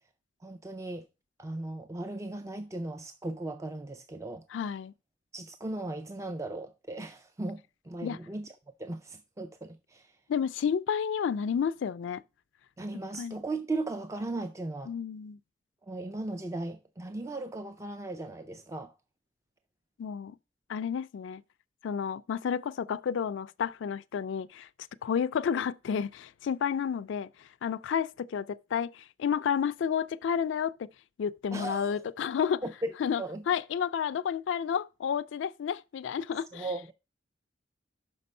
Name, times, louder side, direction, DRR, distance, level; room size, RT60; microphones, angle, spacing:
voice 1, 0.4-1.0 1.4-4.4 5.3-7.6 7.9-8.5 8.8-10.1 12.8-14.9 15.9-18.9 31.5-32.0 32.6-32.9 33.2-33.4 36.5-36.9, right 2 dB, 15° right, 0.3 m, -37 dB
voice 2, 4.5-4.9 8.0-8.2 10.3-12.2 13.2-13.4 14.9-15.4 20.0-20.3 20.7-21.4 21.8-24.7 25.0-27.3 27.6-30.9 31.2-32.6 33.0-36.7, left 7 dB, 75° left, 0.3 m, -31 dB
5.9 x 5.2 x 5.3 m
head